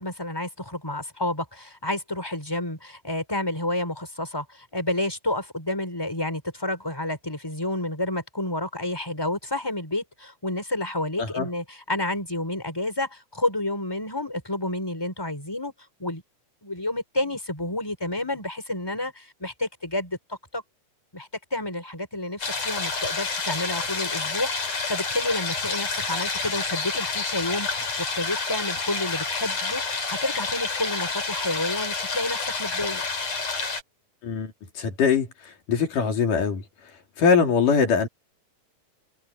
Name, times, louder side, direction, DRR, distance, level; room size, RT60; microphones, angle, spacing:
voice 1, 0.0-15.7 16.0-16.2 16.6-20.6 21.1-33.0, left 1 dB, 5° left, 5.9 m, -30 dB
sound 1, 22.4-33.8, left 4 dB, 55° left, 5.9 m, -29 dB
voice 2, 34.2-35.3 35.7-36.6 37.2-38.1, left 6 dB, 80° left, 4.8 m, -22 dB
omnidirectional pair, 3.6 m